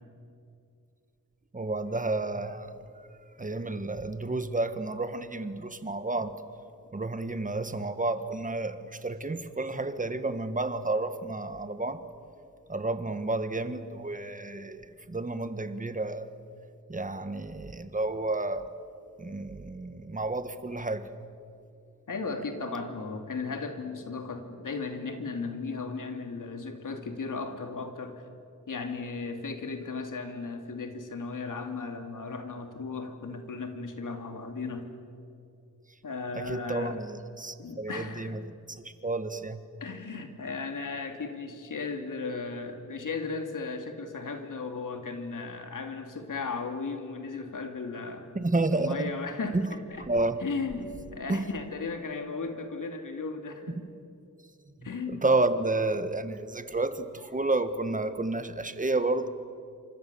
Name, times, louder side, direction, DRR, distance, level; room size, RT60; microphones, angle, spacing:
voice 1, 1.5-2.7 3.4-6.4 6.9-12.0 12.7-16.3 16.9-18.7 19.2-21.1 36.3-38.4 38.7-39.6 48.3-49.1 49.5-49.7 50.1-50.4 51.3-51.4 55.1-59.3, right 2 dB, 25° right, 10 dB, 1.6 m, -30 dB
voice 2, 22.1-28.2 28.7-34.9 36.0-37.0 37.6-38.3 39.8-48.3 48.7-50.1 50.4-53.8 54.8-55.2, left 4 dB, 85° left, 5 dB, 2.8 m, -36 dB
29.0 x 25.5 x 7.1 m, 2.5 s
wide cardioid pair, 85°, 31 cm